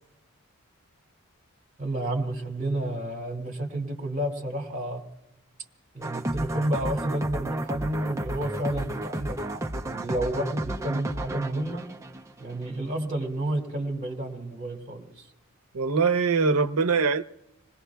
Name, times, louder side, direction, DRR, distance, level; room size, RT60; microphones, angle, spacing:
voice 1, 1.8-5.0 5.9-11.8 12.4-15.2, right 1 dB, 35° right, 2.0 m, -31 dB
sound 1, 6.0-12.8, right 1 dB, 15° right, 0.6 m, -32 dB
voice 2, 15.7-17.2, right 5 dB, 80° right, 0.7 m, -22 dB
27.5 x 20.0 x 2.3 m
head